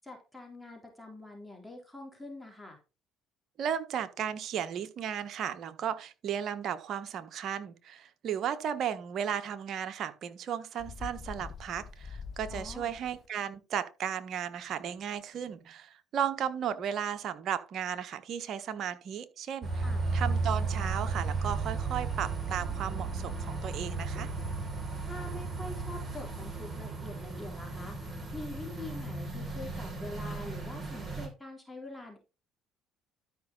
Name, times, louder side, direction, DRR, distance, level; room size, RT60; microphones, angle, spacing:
voice 1, 0.0-2.8 12.5-12.9 19.8-20.0 25.0-28.0 28.3-32.2, left 2 dB, 10° left, 3.5 m, -45 dB
voice 2, 3.6-19.8 20.1-24.3, right 8 dB, 55° right, 1.3 m, -35 dB
Bird, 10.8-13.3, left 5 dB, 45° left, 1.3 m, -44 dB
sound 1, 19.6-31.3, right 4 dB, 20° right, 5.7 m, -34 dB
12.5 x 5.5 x 3.9 m
supercardioid pair, 75°, 0 cm